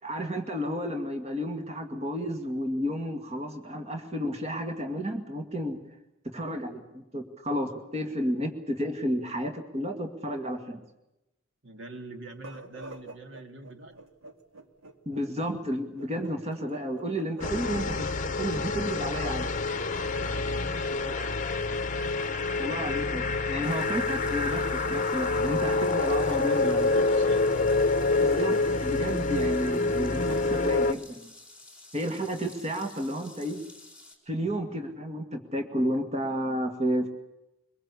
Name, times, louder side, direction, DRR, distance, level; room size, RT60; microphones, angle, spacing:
voice 1, 0.0-5.8 6.3-10.8 15.1-18.1 18.4-19.5 22.6-26.9 28.2-31.3 31.9-33.6 34.3-37.1, equal, 30° right, 5 dB, 2.1 m, -32 dB
voice 2, 11.6-14.0 20.1-21.4 26.3-28.1, right 2 dB, 60° right, 6 dB, 2.3 m, -44 dB
sound 1, 12.3-20.5, right 3 dB, 85° right, 2.2 m, -46 dB
sound 2, 17.4-30.9, left 3 dB, 35° left, 0.9 m, -27 dB
sound 3, 23.6-34.1, left 2 dB, 5° right, 4.0 m, -51 dB
23.5 x 22.0 x 8.4 m, 0.90 s
head